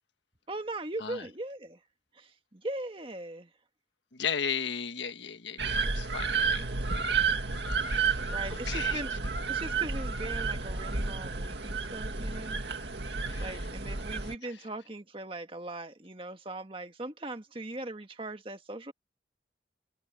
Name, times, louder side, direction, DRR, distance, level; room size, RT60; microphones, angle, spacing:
voice 1, 0.5-1.8 2.1-3.5 8.3-9.1 9.5-12.6 13.4-18.9, right 2 dB, 30° right, 1.7 m, -39 dB
voice 2, 4.1-6.7 7.8-9.0 13.2-13.7 14.4-14.6, left 6 dB, 75° left, 1.4 m, -36 dB
sound 1, 5.6-14.3, right 5 dB, 65° right, 2.2 m, -31 dB
head